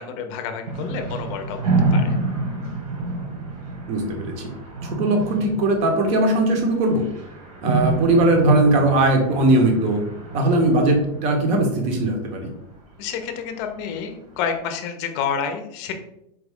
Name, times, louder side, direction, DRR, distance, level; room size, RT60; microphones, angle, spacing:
voice 1, 0.0-1.6 1.9-2.2 13.0-15.9, left 7 dB, 45° left, 6 dB, 0.6 m, -29 dB
sound 1, 0.6-12.8, right 3 dB, 65° right, 1.4 m, -28 dB
voice 2, 3.9-4.5 4.8-7.0 7.6-10.0 10.3-12.5, right 2 dB, 30° right, 3 dB, 0.8 m, -19 dB
4.5 x 2.3 x 3.5 m, 0.80 s
supercardioid pair, 155°, 21 cm